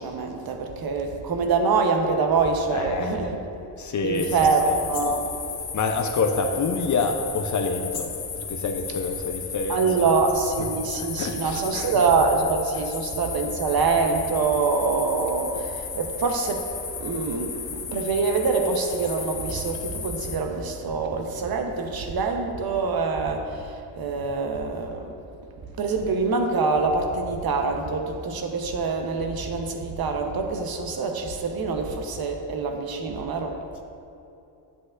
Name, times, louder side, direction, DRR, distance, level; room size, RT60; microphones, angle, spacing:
voice 1, 0.0-3.4 4.0-5.3 9.7-16.7 17.0-25.1 25.8-33.6, right 4 dB, 50° right, 4 dB, 0.9 m, -25 dB
voice 2, 2.7-3.4 3.8-4.5 5.7-10.2 10.6-10.7 10.9-11.9, left 4 dB, 40° left, 4 dB, 0.6 m, -27 dB
dramalj croatia on the hill above the village, 4.1-20.4, left 6 dB, 60° left, 1.2 m, -35 dB
8.4 x 7.6 x 2.5 m, 2.8 s
supercardioid pair, 70°, 45 cm